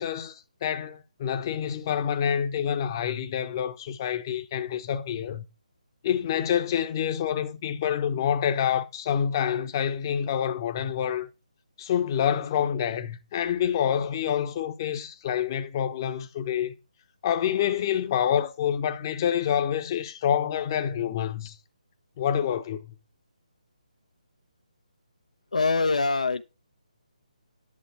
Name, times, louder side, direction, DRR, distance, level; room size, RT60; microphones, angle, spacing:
voice 1, 0.0-5.4 6.0-11.3 11.8-16.7 17.2-21.5 22.2-22.9, left 9 dB, 30° left, 1.0 m, -27 dB
voice 2, 25.5-26.4, left 3 dB, 65° left, 0.8 m, -23 dB
11.0 x 7.0 x 4.6 m
figure-of-eight pair, 145°, 4 cm